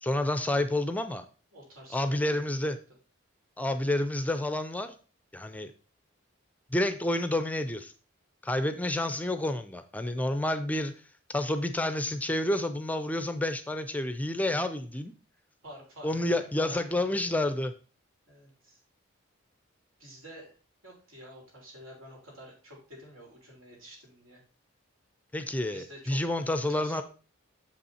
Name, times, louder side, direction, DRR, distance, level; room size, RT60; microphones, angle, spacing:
voice 1, 0.0-1.2 1.9-2.8 3.6-5.0 5.3-5.7 6.7-7.9 8.4-10.9 11.3-15.1 16.0-17.7 25.3-27.0, left 1 dB, 5° left, 10 dB, 0.4 m, -29 dB
voice 2, 1.5-2.7 15.6-17.3 18.3-18.8 20.0-20.5 20.8-24.4 25.7-26.2 26.7-27.0, equal, 90° right, -1 dB, 3.6 m, -49 dB
7.0 x 5.5 x 4.2 m, 0.37 s
head